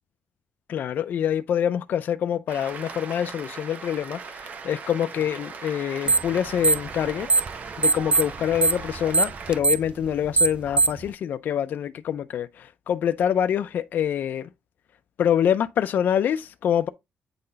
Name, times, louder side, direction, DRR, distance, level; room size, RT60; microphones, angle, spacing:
voice 1, 0.7-7.3 7.8-14.5 15.2-16.9, left 9 dB, 60° left, 0.4 m, -25 dB
Cheering / Applause, 2.5-9.6, right 5 dB, 45° right, 1.1 m, -38 dB
sound 1, 6.1-6.3 6.6-7.5 7.8-11.1, right 3 dB, 25° right, 0.3 m, -20 dB
8.7 x 3.9 x 4.0 m
wide cardioid pair, 160°, 4 cm